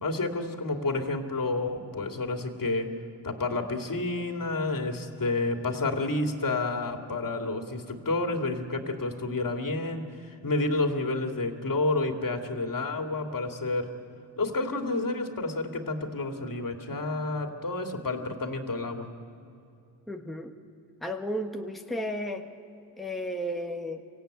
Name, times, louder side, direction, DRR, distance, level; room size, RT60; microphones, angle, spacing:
voice 1, 0.0-2.9 3.2-13.9 14.4-19.1, left 2 dB, 40° left, 4 dB, 2.7 m, -30 dB
voice 2, 20.1-20.5 21.0-22.5 23.0-24.0, equal, ahead, 3 dB, 1.5 m, -33 dB
25.0 x 16.0 x 9.2 m, 2.6 s
supercardioid pair, 55°, 50 cm